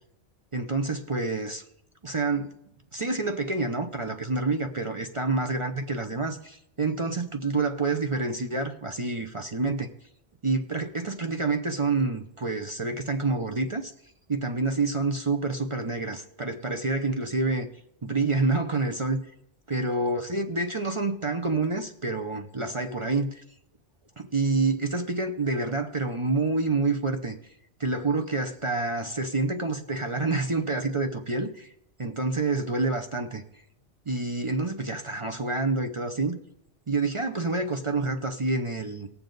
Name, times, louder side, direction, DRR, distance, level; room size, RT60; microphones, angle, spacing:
voice 1, 0.5-1.6 2.0-2.5 2.9-9.9 10.4-13.9 14.3-17.7 18.0-19.2 19.7-23.4 24.2-27.4 27.8-31.7 32.0-33.4 34.1-36.4 36.9-39.1, right 3 dB, 35° right, 5 dB, 0.6 m, -28 dB
18.5 x 7.0 x 3.9 m, 0.76 s
omnidirectional pair, 1.3 m